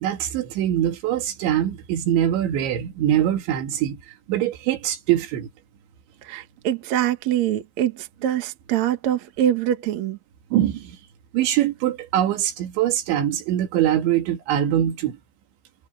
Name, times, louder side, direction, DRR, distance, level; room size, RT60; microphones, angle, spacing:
voice 1, 0.0-4.0 4.3-5.5 10.5-11.0 11.3-15.2, right 11 dB, 75° right, 4.2 m, -23 dB
voice 2, 6.2-10.2, right 11 dB, 55° right, 2.2 m, -24 dB
omnidirectional pair, 5.4 m